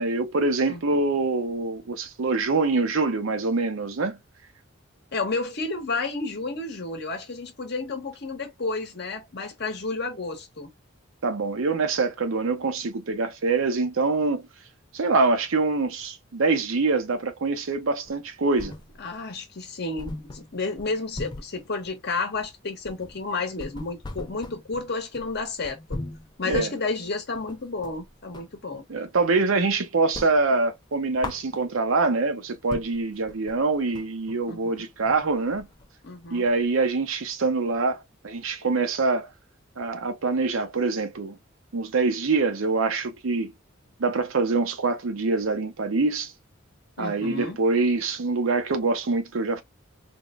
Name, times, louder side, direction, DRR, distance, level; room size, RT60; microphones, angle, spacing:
voice 1, 0.0-4.2 11.2-14.4 14.9-18.7 26.4-26.7 28.9-35.7 36.3-39.3 39.8-41.4 41.7-43.5 44.0-46.3 47.0-49.6, right 3 dB, 85° right, 0.6 m, -25 dB
voice 2, 5.1-10.7 19.0-26.0 26.4-28.8 34.5-34.9 36.0-36.4 47.0-47.6, left 3 dB, 55° left, 1.0 m, -31 dB
sound 1, 18.0-19.2 19.5-19.6 20.0-28.6 28.9-29.7 30.0-32.0 32.4-32.5 32.7-36.8, left 2 dB, 20° left, 0.4 m, -40 dB
3.5 x 2.1 x 2.3 m
head